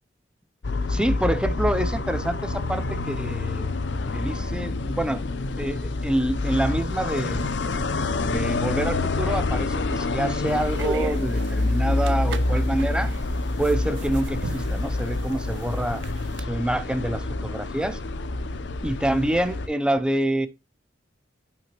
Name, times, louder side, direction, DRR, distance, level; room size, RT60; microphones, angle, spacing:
sound 1, 0.6-19.7, left 2 dB, 70° left, 0.6 m, -27 dB
voice 1, 0.9-3.7 4.1-5.2 5.6-7.5 8.2-13.1 13.6-16.0 16.4-18.0 18.8-20.5, right 1 dB, 5° right, 0.5 m, -27 dB
sound 2, 10.5-16.4, right 4 dB, 70° right, 0.5 m, -38 dB
10.5 x 5.8 x 3.0 m
head